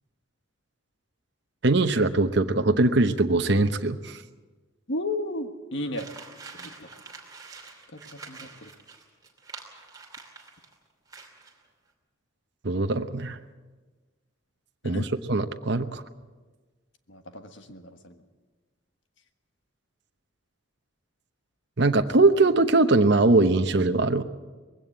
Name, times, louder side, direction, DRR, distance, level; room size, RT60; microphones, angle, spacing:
voice 1, 1.6-4.2 12.6-13.4 14.8-15.0 15.3-16.0 21.8-24.2, right 2 dB, 55° right, 7 dB, 0.9 m, -21 dB
voice 2, 4.9-6.1 6.5-6.9 7.9-8.7 14.8-15.1 17.1-18.2, left 1 dB, 60° left, 8 dB, 1.5 m, -34 dB
sound 1, 6.0-10.7 11.1-11.6, right 4 dB, 20° right, 2.8 m, -46 dB
20.5 x 16.5 x 8.2 m, 1.3 s
head